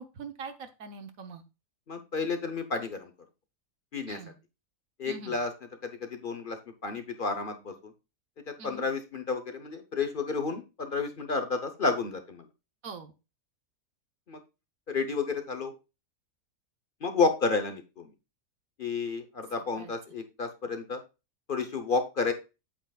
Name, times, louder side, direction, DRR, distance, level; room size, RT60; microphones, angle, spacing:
voice 1, 0.0-1.4 4.1-4.3 5.1-5.4 8.6-8.9 12.8-13.1 19.8-19.9, right 4 dB, 75° right, 8 dB, 1.4 m, -43 dB
voice 2, 1.9-3.1 3.9-4.2 5.0-5.5 5.8-6.6 6.8-7.9 8.6-12.5 14.3-14.4 14.9-15.7 17.0-18.1 18.8-21.0 21.5-22.3, left 4 dB, 45° left, 7 dB, 1.0 m, -31 dB
8.7 x 8.0 x 2.4 m, 0.28 s
omnidirectional pair, 1.5 m